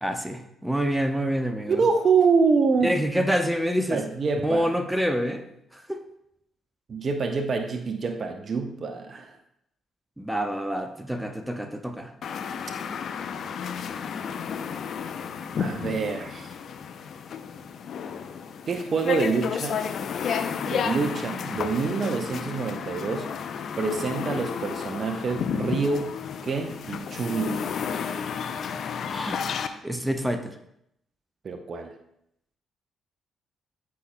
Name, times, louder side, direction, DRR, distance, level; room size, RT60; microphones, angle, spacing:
voice 1, 0.0-1.8 2.8-4.0 4.4-5.4 5.7-6.0 10.2-12.1 29.1-29.4 29.8-30.6, equal, 5° right, 7 dB, 0.8 m, -27 dB
voice 2, 1.7-3.0 3.9-4.8 6.9-9.4 15.5-16.5 18.7-19.8 20.6-23.3 23.8-26.1 26.4-27.7 31.4-31.9, right 4 dB, 45° right, 7 dB, 0.7 m, -26 dB
sound 1, 12.2-29.7, left 7 dB, 55° left, 0.5 m, -32 dB
14.0 x 5.6 x 2.2 m, 0.76 s
figure-of-eight pair, 40°, 0 cm